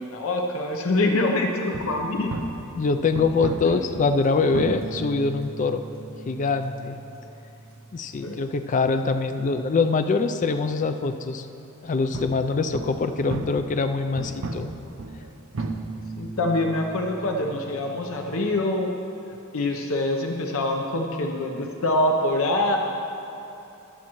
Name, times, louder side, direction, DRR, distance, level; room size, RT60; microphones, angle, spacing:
voice 1, 0.0-2.3 8.2-8.4 16.2-18.9 19.5-22.8, left 2 dB, 70° left, 2 dB, 0.7 m, -25 dB
sound 1, 1.7-9.7 10.0-10.1 10.9-11.0 12.1-18.6, right 3 dB, 65° right, 0.6 m, -36 dB
voice 2, 2.8-5.8 6.3-7.0 7.9-11.5 11.8-14.7, left 4 dB, 35° left, 8 dB, 0.3 m, -24 dB
22.5 x 7.5 x 3.0 m, 2.9 s
head